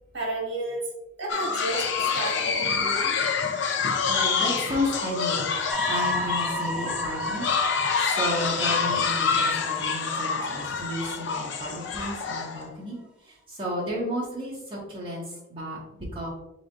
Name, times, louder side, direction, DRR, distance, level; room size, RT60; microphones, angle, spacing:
voice 1, 0.1-0.8 1.2-3.2, right 2 dB, 60° right, -1 dB, 1.6 m, -32 dB
sound 1, 1.3-12.6, left 5 dB, 60° left, 0.5 m, -27 dB
voice 2, 4.0-5.5 5.9-16.3, left 1 dB, 25° right, -6 dB, 1.6 m, -33 dB
sound 2, 5.7-11.6 12.0-12.1, equal, 5° right, 0.4 m, -34 dB
4.8 x 4.4 x 2.5 m, 0.89 s
head